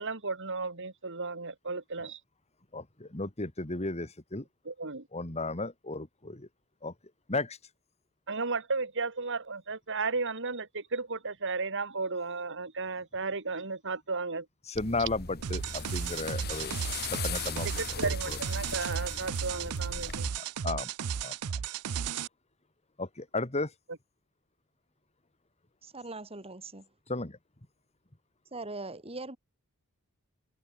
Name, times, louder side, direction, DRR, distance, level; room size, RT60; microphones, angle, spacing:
voice 1, 0.0-2.2 4.6-5.1 8.3-14.5 17.8-20.3, right 4 dB, 55° right, 2.8 m, -34 dB
voice 2, 2.7-4.4 5.1-6.5 6.8-6.9 7.3-7.6 14.7-16.8 17.1-18.4 20.4-20.9 21.2-21.3 23.0-23.7 27.1-27.4, left 2 dB, 30° left, 2.2 m, -34 dB
sound 1, 14.7-20.3, left 5 dB, 45° left, 2.0 m, -39 dB
sound 2, 15.4-22.3, right 7 dB, 90° right, 0.5 m, -34 dB
voice 3, 25.8-26.9 28.5-29.4, right 2 dB, 25° right, 4.3 m, -41 dB
head